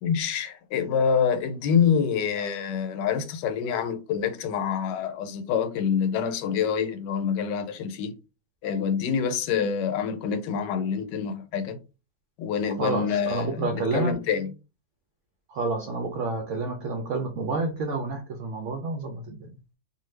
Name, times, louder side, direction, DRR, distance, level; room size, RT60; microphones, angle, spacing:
voice 1, 0.0-8.2 8.6-11.8 12.4-14.5, left 7 dB, 80° left, 1.2 m, -26 dB
voice 2, 12.8-14.1 15.5-19.5, right 3 dB, 70° right, 0.7 m, -29 dB
2.5 x 2.5 x 3.2 m
omnidirectional pair, 1.8 m